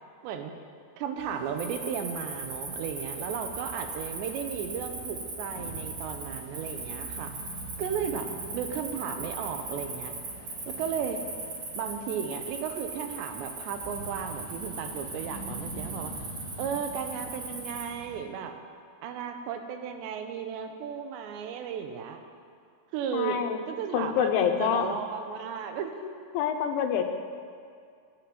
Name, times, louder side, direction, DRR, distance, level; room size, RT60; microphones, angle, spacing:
voice 1, 0.2-0.5 1.0-7.3 7.8-10.1 10.7-11.2 11.7-16.3 16.6-18.5 19.0-22.2 22.9-23.4 23.7-25.9, right 7 dB, 80° right, 6 dB, 2.9 m, -35 dB
sound 1, 1.2-18.2, right 1 dB, 45° left, 1.8 m, -45 dB
Cricket, 1.6-17.9, right 3 dB, 50° right, 1.4 m, -39 dB
voice 2, 23.1-23.6 23.9-25.0 26.3-27.0, left 8 dB, 90° left, 6 dB, 3.2 m, -26 dB
12.0 x 6.7 x 9.6 m, 2.3 s
omnidirectional pair, 5.2 m